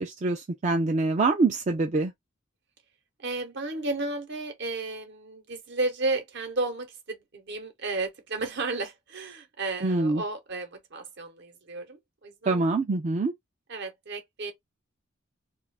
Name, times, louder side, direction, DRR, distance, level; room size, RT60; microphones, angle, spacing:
voice 1, 0.0-2.1 9.8-10.2 12.5-13.3, right 3 dB, 35° right, 0.4 m, -25 dB
voice 2, 3.2-12.7 13.7-14.5, right 2 dB, 55° right, 0.9 m, -33 dB
2.4 x 2.4 x 3.3 m
head